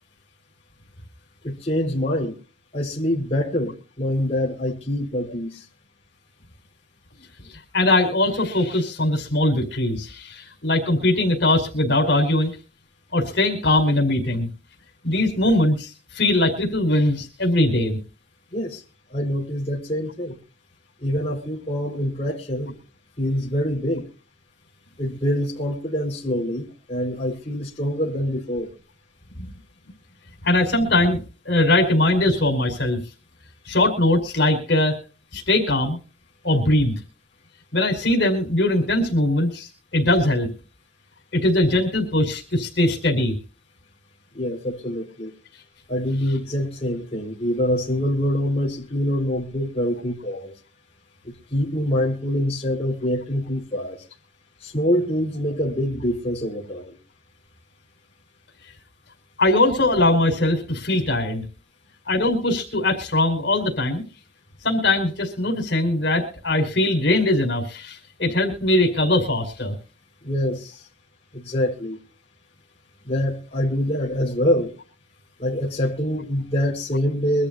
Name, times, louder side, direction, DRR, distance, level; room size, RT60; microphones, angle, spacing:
voice 1, 1.4-2.3 2.7-5.6 18.5-18.8 19.1-20.4 21.0-22.8 23.2-24.1 25.0-28.7 44.3-45.3 45.9-50.5 51.2-54.0 54.6-57.0 70.2-70.9 71.3-72.0 73.0-74.7 75.4-77.5, equal, 35° left, 4.9 m, -25 dB
voice 2, 7.7-12.5 13.1-14.5 15.0-18.0 30.4-33.0 33.6-34.9 35.3-36.0 36.4-37.0 37.7-40.5 41.3-43.3 59.4-61.4 62.1-64.0 64.6-69.7, left 1 dB, 65° left, 5.2 m, -21 dB
24.5 x 13.5 x 2.7 m
head